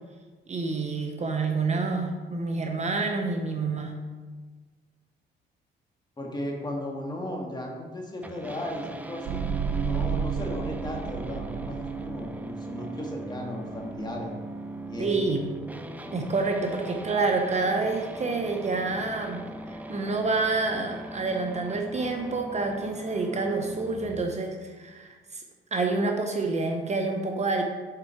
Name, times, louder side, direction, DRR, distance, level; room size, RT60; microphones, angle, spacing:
voice 1, 0.5-3.9 15.0-15.5 16.1-19.4 19.7-25.4 25.7-27.6, right 3 dB, 35° right, 3 dB, 0.8 m, -28 dB
voice 2, 6.2-14.3 14.9-15.1, left 1 dB, 20° left, 0 dB, 1.6 m, -36 dB
sound 1, 8.2-24.2, right 2 dB, 10° right, 0.5 m, -39 dB
sound 2, 9.2-12.4, right 7 dB, 65° right, 0.4 m, -31 dB
6.8 x 4.5 x 4.6 m, 1.4 s
cardioid pair, 90°, 20 cm